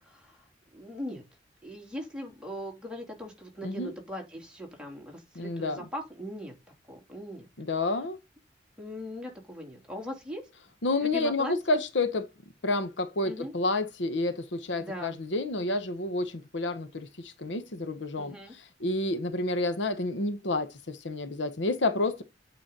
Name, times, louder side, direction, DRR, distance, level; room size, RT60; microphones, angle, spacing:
voice 1, 0.0-1.2 1.6-6.5 6.9-7.5 8.8-10.4 11.0-11.8 13.2-13.5 14.8-15.1 18.2-18.5, equal, 5° right, 3.1 m, -40 dB
voice 2, 3.6-3.9 5.4-5.8 7.6-8.2 10.8-12.3 12.6-18.4 18.8-22.2, left 2 dB, 70° left, 0.9 m, -29 dB
9.0 x 5.0 x 4.0 m
head